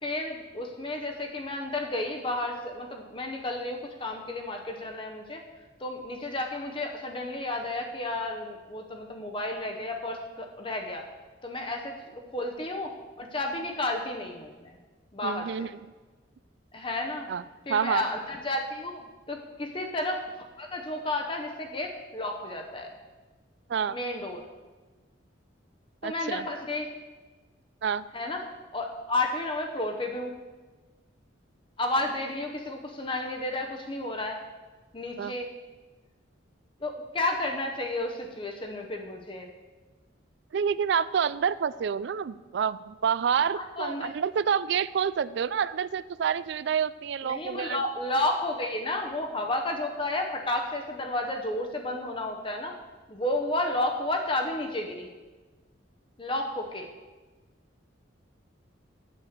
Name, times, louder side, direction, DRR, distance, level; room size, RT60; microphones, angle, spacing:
voice 1, 0.0-5.4 5.8-11.0 11.4-12.9 13.2-14.7 15.1-15.7 16.7-17.3 17.7-22.9 23.9-24.5 26.0-26.9 28.1-28.4 28.7-30.3 31.8-34.4 34.9-35.5 36.8-39.5 43.5-44.1 47.3-52.8 53.1-55.1 56.2-56.9, left 2 dB, 25° left, 3 dB, 0.7 m, -32 dB
voice 2, 15.2-15.9 17.3-17.4 17.7-18.0 23.7-24.0 26.0-26.5 27.8-28.1 35.2-35.3 40.5-47.8, right 7 dB, 60° right, 17 dB, 0.3 m, -28 dB
8.5 x 6.6 x 6.6 m, 1.3 s
head